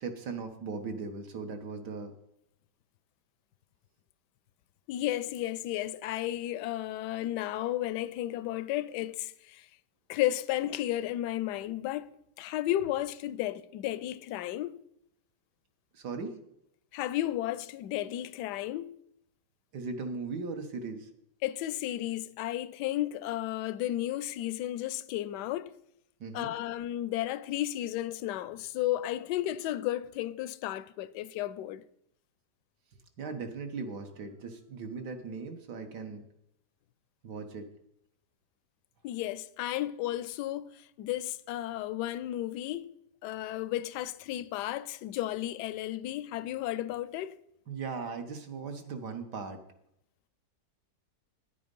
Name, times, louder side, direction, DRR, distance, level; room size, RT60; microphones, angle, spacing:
voice 1, 0.0-2.1 15.9-16.4 19.7-21.1 26.2-26.5 33.2-36.2 37.2-37.7 47.7-49.6, right 4 dB, 65° right, 1.8 m, -38 dB
voice 2, 4.9-9.7 10.1-14.8 16.9-19.0 21.4-25.8 26.3-31.8 39.0-42.9 43.2-47.4, left 14 dB, 75° left, 1.1 m, -33 dB
9.8 x 9.5 x 5.3 m
omnidirectional pair, 1.9 m